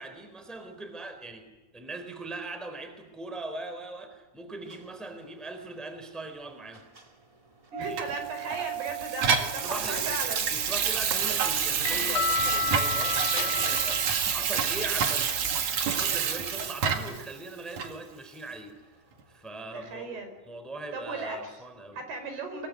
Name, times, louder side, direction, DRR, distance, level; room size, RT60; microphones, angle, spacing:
voice 1, 0.0-1.5 1.7-6.8 7.8-8.0 8.4-8.6 9.4-18.7 19.3-20.2 20.5-22.0, right 2 dB, ahead, 8 dB, 3.3 m, -40 dB
sound 1, 4.6-19.3, right 14 dB, 20° right, 0.9 m, -44 dB
voice 2, 7.7-10.5 19.7-20.3 20.9-21.6 21.9-22.7, right 3 dB, 75° right, 6 dB, 7.1 m, -36 dB
Water tap faucet / Sink (filling or washing), 8.0-17.3 17.8-17.9, right 7 dB, 55° right, 3.0 m, -28 dB
sound 2, 10.8-15.6, left 4 dB, 80° left, 4.9 m, -33 dB
23.0 x 23.0 x 9.7 m, 1.2 s
omnidirectional pair, 4.6 m